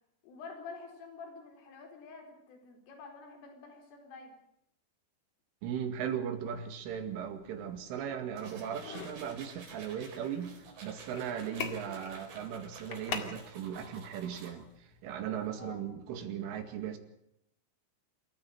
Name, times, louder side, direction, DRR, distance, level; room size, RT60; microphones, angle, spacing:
voice 1, 0.2-4.3 15.6-15.8, left 4 dB, 75° left, 4 dB, 6.7 m, -48 dB
voice 2, 5.6-17.0, right 8 dB, 75° right, 8 dB, 4.4 m, -38 dB
sound 1, 6.8-15.6, left 5 dB, 50° left, 2.1 m, -46 dB
sound 2, 8.4-14.5, right 4 dB, 60° right, 6.4 m, -52 dB
27.5 x 14.5 x 7.9 m, 0.76 s
omnidirectional pair, 5.8 m